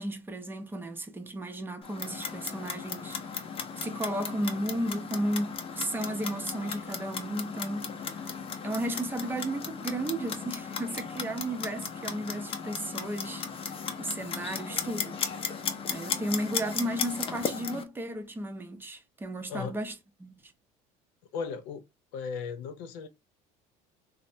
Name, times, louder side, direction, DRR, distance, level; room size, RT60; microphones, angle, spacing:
voice 1, 0.0-8.3 8.6-15.2 15.9-19.9 20.2-20.5, right 1 dB, 10° right, 0.6 m, -34 dB
Clock, 1.8-17.8, left 6 dB, 35° left, 0.6 m, -36 dB
voice 2, 21.3-21.8 22.1-23.1, left 6 dB, 80° left, 0.7 m, -36 dB
3.2 x 2.0 x 2.6 m
supercardioid pair, 110°, 17 cm